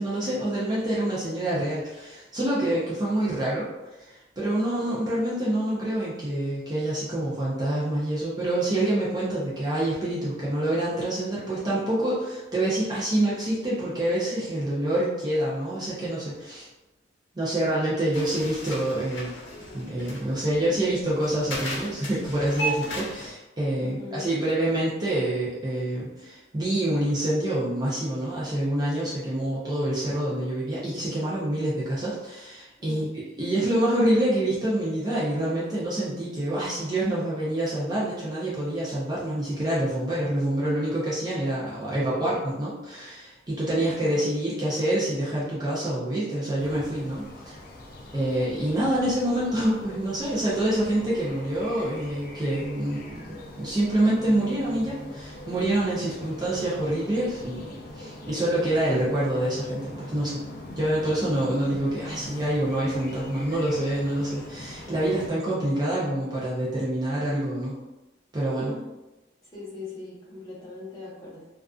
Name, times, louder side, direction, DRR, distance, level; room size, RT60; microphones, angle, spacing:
voice 1, 0.0-3.7 4.0-16.7 17.4-19.3 19.7-33.1 33.4-47.6 48.1-60.4 60.8-67.8 68.3-68.7, right 1 dB, 20° right, -8 dB, 0.5 m, -26 dB
sound 1, 18.1-23.3, right 1 dB, 75° left, 0.7 m, -35 dB
voice 2, 23.8-24.3 32.8-33.1 43.7-44.3 61.1-61.7 68.6-68.9 69.4-71.5, left 3 dB, 20° left, -9 dB, 0.9 m, -41 dB
sound 2, 46.6-65.3, left 1 dB, 50° left, 0.3 m, -42 dB
2.4 x 2.3 x 2.3 m, 1.0 s
head